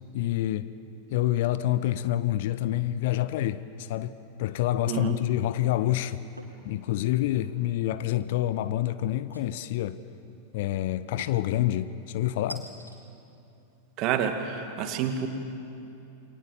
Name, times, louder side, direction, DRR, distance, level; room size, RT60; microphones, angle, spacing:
voice 1, 0.1-0.7 1.1-4.1 4.4-6.2 6.6-10.0 10.5-12.6, left 14 dB, 50° left, 0.8 m, -27 dB
voice 2, 4.9-5.2 14.0-15.3, right 8 dB, 40° right, 2.3 m, -28 dB
sound 1, 6.4-6.7 7.1-7.6 9.3-9.9 11.2-11.5 12.5-13.0, right 1 dB, 85° right, 2.8 m, -45 dB
29.0 x 22.5 x 7.4 m
figure-of-eight pair, 90°, 0 cm